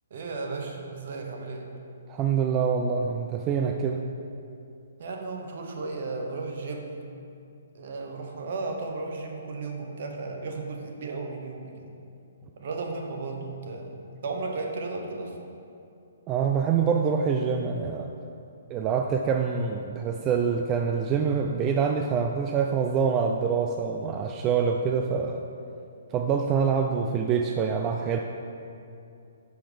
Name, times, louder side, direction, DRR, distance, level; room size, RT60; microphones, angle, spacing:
voice 1, 0.1-1.7 5.0-7.1 7.7-11.9 12.6-15.3, right 3 dB, 60° right, 2 dB, 1.0 m, -34 dB
voice 2, 2.1-4.0 16.3-18.1 18.7-25.4 26.1-28.2, right 6 dB, 25° right, 3 dB, 0.3 m, -25 dB
6.0 x 6.0 x 5.1 m, 2.6 s
hypercardioid pair, 145°, 0 cm